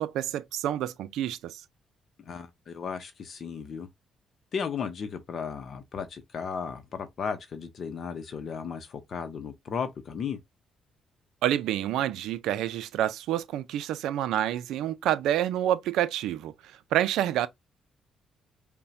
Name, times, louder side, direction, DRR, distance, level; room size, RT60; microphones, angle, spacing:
voice 1, 0.0-1.6 11.4-16.5 16.9-17.5, right 12 dB, 85° right, 0.4 m, -28 dB
voice 2, 2.2-3.9 4.5-10.4, left 6 dB, 55° left, 0.7 m, -35 dB
5.5 x 2.2 x 2.6 m
cardioid pair, 90°, 0 cm